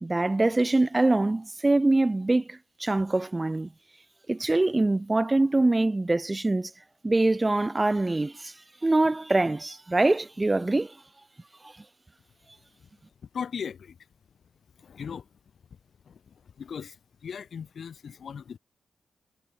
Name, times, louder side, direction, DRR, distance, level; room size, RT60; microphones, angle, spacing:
voice 1, 0.0-3.7 4.3-6.7 7.0-8.5 8.8-10.9, right 2 dB, 20° right, 1.4 m, -24 dB
voice 2, 13.3-14.0 14.8-15.3 16.1-18.6, left 7 dB, 60° left, 5.9 m, -38 dB
cardioid pair, 100°, 0 cm